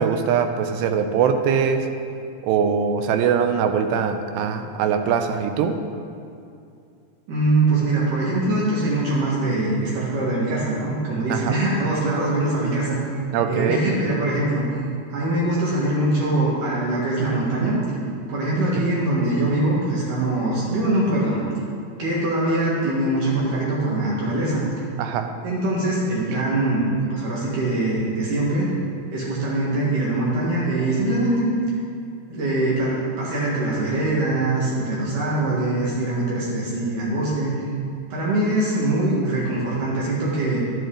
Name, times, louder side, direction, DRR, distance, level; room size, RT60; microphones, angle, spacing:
voice 1, 0.0-1.9 2.4-5.8 11.3-11.6 13.3-13.8 18.8-18.9 25.0-25.3, right 7 dB, 80° right, 6 dB, 2.6 m, -22 dB
voice 2, 7.3-13.0 13.5-14.6 15.1-17.8 18.3-21.4 22.0-24.6 25.4-26.8 27.1-28.7 29.1-31.5 32.3-37.6 38.1-40.6, right 2 dB, 60° right, -6 dB, 2.4 m, -23 dB
12.0 x 7.9 x 3.8 m, 2.5 s
omnidirectional pair, 5.2 m